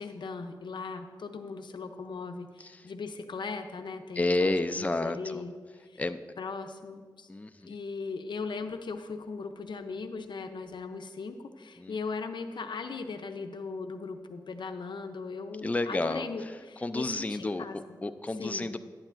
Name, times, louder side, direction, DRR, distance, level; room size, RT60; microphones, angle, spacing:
voice 1, 0.0-5.5 5.9-6.0 6.4-7.3 7.6-17.8 18.4-18.7, left 4 dB, 80° left, 7 dB, 0.6 m, -38 dB
voice 2, 4.2-5.4 6.0-6.2 7.3-7.8 11.8-12.0 15.6-16.5 16.8-18.8, left 2 dB, 20° left, 9 dB, 0.4 m, -31 dB
11.5 x 8.9 x 2.5 m, 1.5 s
cardioid pair, 50°, 8 cm